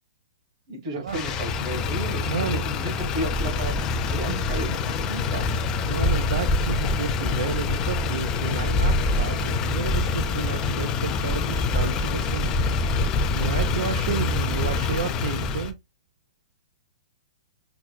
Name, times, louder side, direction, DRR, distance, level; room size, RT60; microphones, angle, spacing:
voice 1, 0.7-2.3 2.6-5.6, right 1 dB, 45° right, 1.5 m, -33 dB
Motor vehicle (road), 1.1-15.7, left 3 dB, 20° left, 0.4 m, -25 dB
voice 2, 2.2-2.6 5.9-12.9 13.3-15.8, right 7 dB, 80° right, 0.5 m, -31 dB
5.8 x 2.1 x 2.2 m
hypercardioid pair, 165°, 4 cm